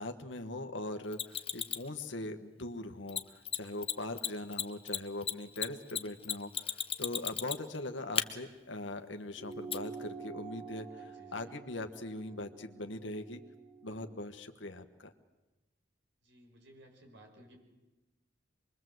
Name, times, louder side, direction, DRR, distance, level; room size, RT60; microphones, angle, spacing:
voice 1, 0.0-10.9 11.3-13.4 13.8-15.1, left 2 dB, 80° left, 7 dB, 1.4 m, -41 dB
Mechanisms, 1.1-1.9 3.1-3.2 3.5-3.6 3.8-3.9 4.2-7.8 8.2-8.3 9.7-9.8, left 9 dB, 30° left, 1.1 m, -33 dB
sound 1, 9.4-14.2, right 4 dB, 30° right, 4.0 m, -48 dB
voice 2, 11.0-11.5 16.2-17.6, right 1 dB, 70° right, 2 dB, 5.9 m, -58 dB
25.5 x 22.5 x 7.9 m, 1.1 s
head